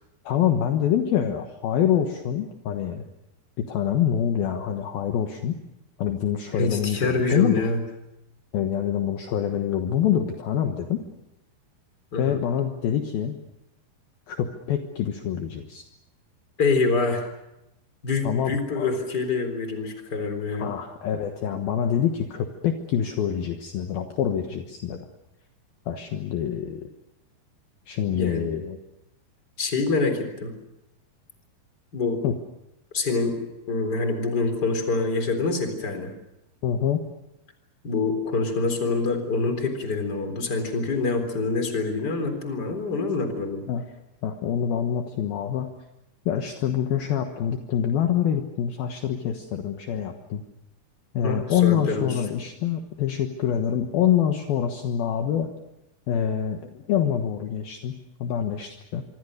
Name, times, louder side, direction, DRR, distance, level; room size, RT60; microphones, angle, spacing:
voice 1, 0.3-3.1 3.6-5.5 6.0-7.6 8.5-11.0 12.2-13.4 14.3-15.8 18.2-18.9 20.6-25.0 25.9-26.9 27.9-28.8 32.2-32.3 36.6-37.0 43.7-43.8 44.2-45.7 46.3-50.4 51.1-55.5 56.1-59.0, left 9 dB, 65° left, 5 dB, 2.9 m, -26 dB
voice 2, 6.5-7.8 12.1-12.4 16.6-17.3 18.0-20.7 28.1-28.5 29.6-30.5 31.9-32.2 32.9-33.4 33.7-36.1 37.8-43.7 51.2-52.2, left 3 dB, 25° left, 7 dB, 3.9 m, -26 dB
25.5 x 25.0 x 6.6 m, 0.89 s
omnidirectional pair, 5.0 m